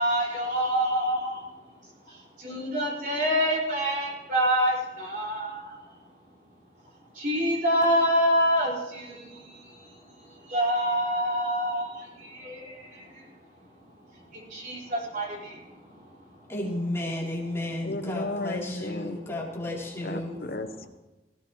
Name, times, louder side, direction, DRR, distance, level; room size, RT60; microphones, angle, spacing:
voice 1, 0.0-1.5 2.0-5.8 7.1-9.7 10.2-13.0 14.3-15.6, equal, 50° right, -4 dB, 5.1 m, -27 dB
voice 2, 16.5-20.3, left 1 dB, 15° left, -5 dB, 3.5 m, -32 dB
voice 3, 17.8-19.2 20.0-20.9, left 2 dB, 55° left, 8 dB, 1.0 m, -34 dB
18.0 x 16.5 x 3.2 m, 1.1 s
head